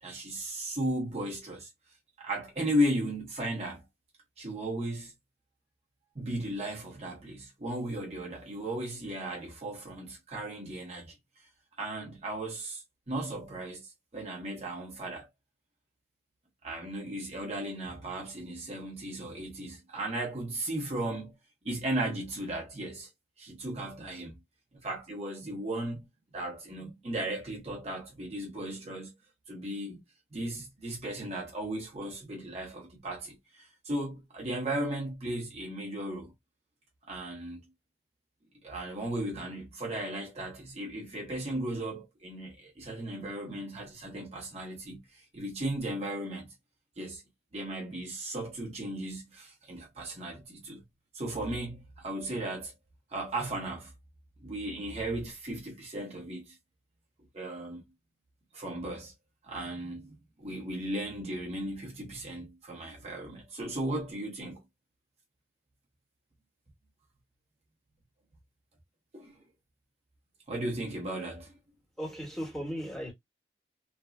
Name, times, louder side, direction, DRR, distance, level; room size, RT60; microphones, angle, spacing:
voice 1, 0.0-1.7 2.2-3.8 4.4-5.1 6.1-11.1 11.8-15.3 16.6-21.3 21.6-23.1 23.4-24.4 24.8-26.1 26.3-29.2 29.5-30.0 30.3-36.3 37.1-37.6 38.6-46.5 47.0-47.2 47.5-50.8 51.1-52.7 53.1-53.9 54.4-56.6 57.3-57.8 58.5-59.1 59.4-64.6 69.1-69.4 70.5-71.5, right 1 dB, 35° right, 0.9 m, -36 dB
voice 2, 72.0-73.1, equal, 5° left, 1.2 m, -36 dB
3.3 x 2.3 x 2.2 m
head